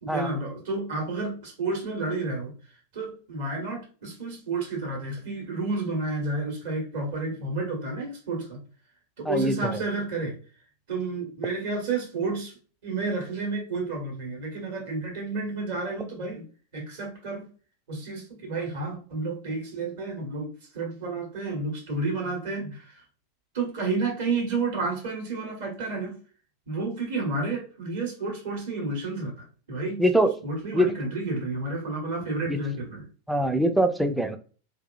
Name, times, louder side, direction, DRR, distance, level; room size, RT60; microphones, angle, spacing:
voice 1, 0.0-2.5 2.9-8.6 9.2-10.4 10.9-12.6 12.8-16.5 16.7-17.5 17.9-23.0 23.5-26.2 26.7-30.0 30.4-33.1, right 3 dB, 55° right, 0 dB, 1.2 m, -31 dB
voice 2, 9.3-9.8 30.0-30.3 30.7-30.9 32.5-32.6 33.3-34.4, equal, ahead, 7 dB, 0.3 m, -23 dB
2.7 x 2.4 x 2.3 m, 0.38 s
figure-of-eight pair, 90°, 0 cm